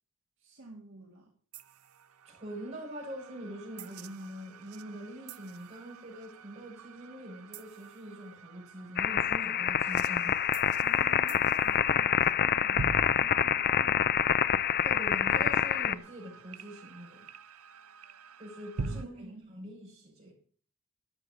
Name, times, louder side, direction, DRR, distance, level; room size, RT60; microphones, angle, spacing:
voice 1, 0.4-1.3 10.8-14.4 18.9-19.6, right 2 dB, 60° right, 2.2 m, -51 dB
sound 1, 1.5-19.0, right 4 dB, 80° right, 0.7 m, -46 dB
voice 2, 2.2-10.4 14.8-17.3 18.4-20.3, equal, 30° right, 6.9 m, -43 dB
sound 2, 9.0-15.9, left 8 dB, 45° left, 0.5 m, -26 dB
13.0 x 8.0 x 6.4 m
head